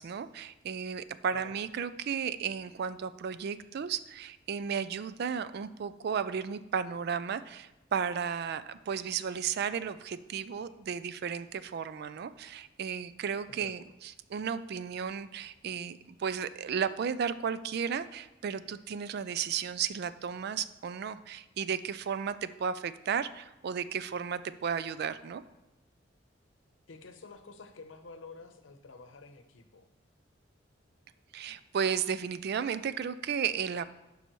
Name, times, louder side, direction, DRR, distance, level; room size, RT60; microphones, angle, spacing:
voice 1, 0.0-25.4 31.3-33.8, right 7 dB, 55° right, 14 dB, 0.4 m, -34 dB
voice 2, 1.3-1.6 13.5-13.7 26.9-29.9, left 3 dB, 85° left, 8 dB, 0.8 m, -49 dB
11.0 x 5.4 x 3.1 m, 1.0 s
head